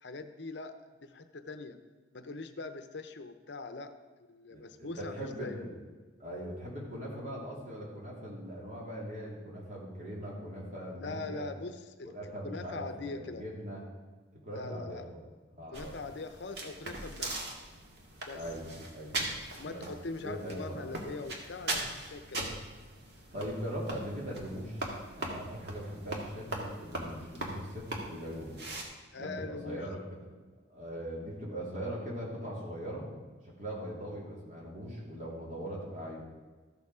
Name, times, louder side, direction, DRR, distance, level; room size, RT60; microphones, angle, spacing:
voice 1, 0.0-1.8 2.1-3.9 4.3-5.6 11.0-13.5 14.5-15.1 15.7-17.5 18.3-18.4 19.5-22.6 29.1-29.9, left 3 dB, 65° left, 9 dB, 0.7 m, -42 dB
voice 2, 4.5-5.8 6.2-11.5 12.0-13.8 14.3-15.2 15.5-16.0 18.3-19.2 19.6-19.8 20.2-20.9 23.3-24.8 25.1-28.6 29.2-30.2 30.7-33.1 33.4-36.2, equal, 40° right, -4 dB, 3.0 m, -40 dB
sound 1, 15.7-28.8, right 2 dB, 55° right, 1.8 m, -40 dB
13.5 x 7.0 x 4.9 m, 1.3 s
head